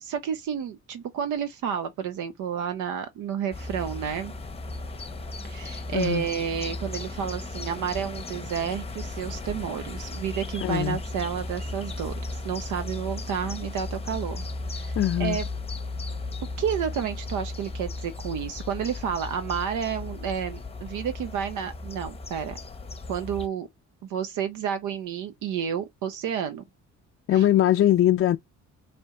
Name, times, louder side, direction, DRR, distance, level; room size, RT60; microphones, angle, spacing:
voice 1, 0.0-4.3 5.4-14.4 14.7-15.5 16.6-22.6 23.1-23.7 24.1-26.6 27.3-27.5, right 8 dB, 80° right, 0.7 m, -31 dB
sound 1, 3.5-23.5, left 2 dB, 20° left, 0.7 m, -35 dB
voice 2, 5.9-6.2 10.6-11.0 15.0-15.4 27.3-28.4, left 12 dB, 45° left, 0.4 m, -21 dB
4.3 x 3.1 x 3.7 m
cardioid pair, 90°, 30 cm